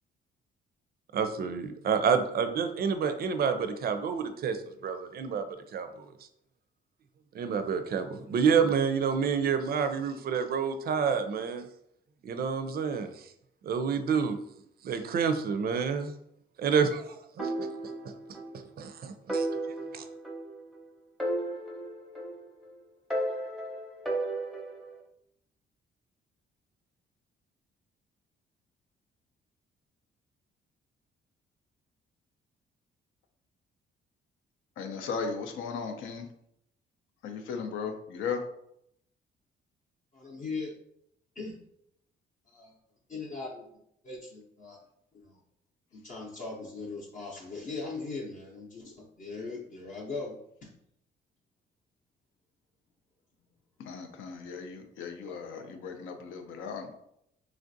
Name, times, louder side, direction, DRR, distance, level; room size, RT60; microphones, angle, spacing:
voice 1, 1.1-5.4 5.7-6.1 7.3-11.6 12.2-13.1 13.6-14.4 14.8-16.1 16.6-17.7 18.8-19.5 19.9-20.0, right 6 dB, 50° right, 9 dB, 0.4 m, -28 dB
sound 1, 17.4-18.6 18.8-18.9 19.3-20.8 21.2-22.6 23.1-24.9, right 1 dB, ahead, 0.6 m, -34 dB
voice 2, 34.8-36.2 37.2-38.4 53.9-56.9, left 5 dB, 80° left, 5 dB, 0.5 m, -36 dB
voice 3, 40.1-40.7 41.4-41.6 42.5-42.7 43.1-43.7 44.0-44.8 45.1-45.4 45.9-50.4 50.6-50.7 56.2-56.3, left 3 dB, 40° left, -3 dB, 0.6 m, -39 dB
3.1 x 2.5 x 2.6 m, 0.75 s
cardioid pair, 90°, 20 cm